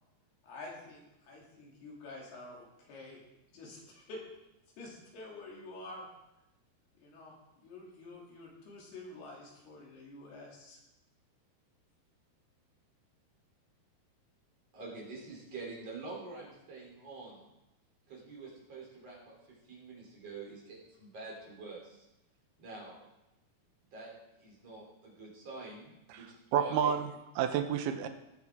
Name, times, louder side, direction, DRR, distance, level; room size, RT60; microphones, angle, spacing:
voice 1, 0.4-3.2 3.5-4.2 4.8-6.1 7.0-10.8, left 2 dB, 80° left, -3 dB, 4.6 m, -48 dB
voice 2, 14.7-17.5 18.1-22.1 22.6-23.0 23.9-24.1 24.4-26.9, right 3 dB, 40° right, -4 dB, 4.0 m, -46 dB
voice 3, 26.5-28.1, right 8 dB, 85° right, 7 dB, 2.7 m, -30 dB
18.5 x 8.1 x 3.6 m, 0.92 s
omnidirectional pair, 4.6 m